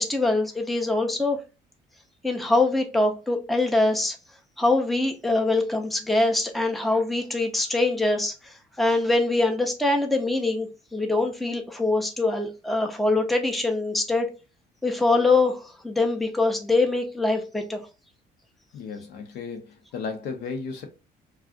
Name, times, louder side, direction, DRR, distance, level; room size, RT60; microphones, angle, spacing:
voice 1, 0.0-1.4 2.2-4.2 4.6-14.3 14.8-17.8, left 2 dB, ahead, 0.5 m, -23 dB
voice 2, 18.7-20.8, left 5 dB, 80° left, 0.8 m, -34 dB
2.4 x 2.3 x 3.6 m
cardioid pair, 110°, 17 cm